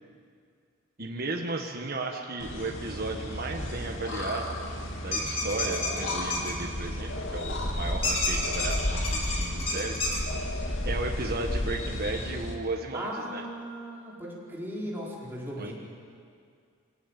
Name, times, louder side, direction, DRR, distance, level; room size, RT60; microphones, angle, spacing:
voice 1, 1.0-4.6 5.0-10.1 10.8-13.4 15.6-15.7, right 2 dB, 45° right, 1 dB, 1.5 m, -34 dB
sound 1, 2.4-12.5, left 1 dB, 60° left, 2.6 m, -33 dB
sound 2, 5.1-6.5 8.0-10.2, left 2 dB, 25° left, 3.4 m, -30 dB
voice 2, 7.8-8.2 12.9-15.7, equal, 10° right, -5 dB, 4.8 m, -37 dB
25.0 x 18.0 x 9.1 m, 2.3 s
head